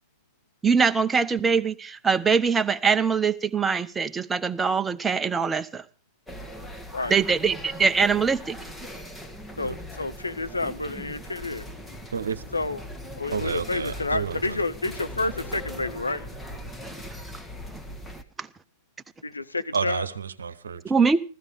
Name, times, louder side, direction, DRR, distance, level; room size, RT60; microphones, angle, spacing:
voice 1, 0.6-5.8 7.1-8.6 13.4-13.5 16.8-16.9 18.4-18.5 20.8-21.2, right 5 dB, 15° right, 0.8 m, -23 dB
sound 1, 6.3-18.2, left 1 dB, 10° left, 1.5 m, -40 dB
voice 2, 9.6-11.7 12.5-12.8 13.2-16.2 19.2-20.1, left 3 dB, 80° left, 0.8 m, -29 dB
voice 3, 12.1-12.4 13.3-14.6 19.7-20.8, right 6 dB, 70° right, 1.0 m, -30 dB
15.0 x 14.5 x 5.1 m
figure-of-eight pair, 90°, 0 cm